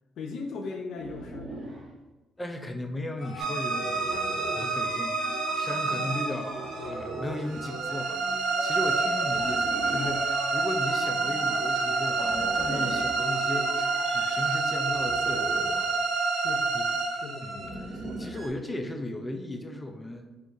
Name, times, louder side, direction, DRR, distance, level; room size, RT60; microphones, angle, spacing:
voice 1, 0.2-1.7 16.3-16.7 17.1-18.2, left 4 dB, 75° left, 3 dB, 0.4 m, -39 dB
sound 1, 0.9-1.9 3.9-4.8 6.6-7.6 9.2-10.3 12.2-13.2 14.8-15.9 17.5-18.5, right 1 dB, 45° right, 1.1 m, -40 dB
voice 2, 2.4-16.3 16.7-16.9 17.4-20.2, left 1 dB, 15° left, 5 dB, 0.5 m, -37 dB
sound 2, 3.2-15.0, equal, 35° left, 0.9 m, -40 dB
sound 3, 3.4-18.5, right 3 dB, 90° right, 0.8 m, -28 dB
4.6 x 3.4 x 2.6 m, 1.1 s
cardioid pair, 90°, 0 cm